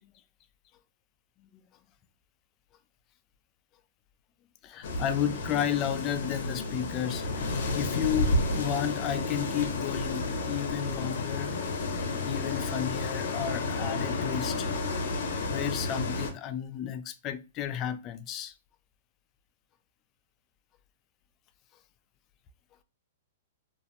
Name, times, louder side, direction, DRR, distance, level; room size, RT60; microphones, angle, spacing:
voice 1, 4.6-7.3 7.7-11.6 12.2-14.7 15.5-18.5, left 10 dB, 30° left, 0.3 m, -32 dB
sound 1, 4.8-16.3, left 2 dB, 70° left, 0.6 m, -31 dB
2.4 x 2.0 x 2.7 m
hypercardioid pair, 135°, 0 cm